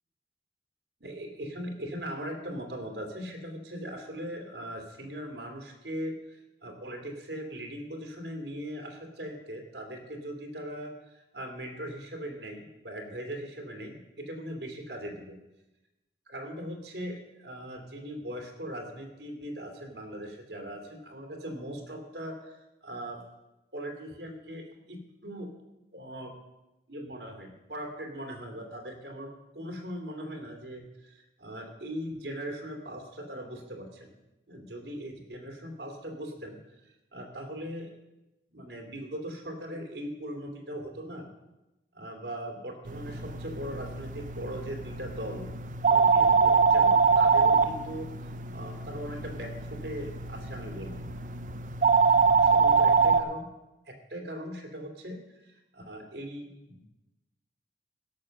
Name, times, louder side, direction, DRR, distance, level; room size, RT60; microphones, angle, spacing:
voice 1, 1.0-15.4 16.3-23.2 23.7-25.5 25.9-26.3 26.9-34.1 34.5-36.6 37.1-37.9 38.5-41.3 41.9-45.5 45.8-48.1 48.5-51.1 52.4-53.5 53.9-55.2 55.4-56.9, equal, 80° right, 3 dB, 2.4 m, -40 dB
sound 1, 42.9-53.2, right 5 dB, 45° right, 0.6 m, -24 dB
16.0 x 6.6 x 6.4 m, 0.99 s
head